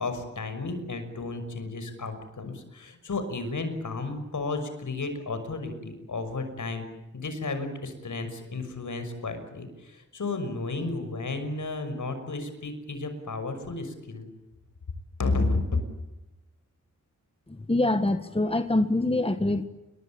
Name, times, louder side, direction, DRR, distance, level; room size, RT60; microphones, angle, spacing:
voice 1, 0.0-6.9 7.1-14.3 15.2-15.8, left 3 dB, 80° left, 8 dB, 6.1 m, -32 dB
voice 2, 17.5-19.7, left 2 dB, 20° left, 10 dB, 1.5 m, -25 dB
29.5 x 23.0 x 8.8 m, 0.99 s
wide cardioid pair, 100°, 30 cm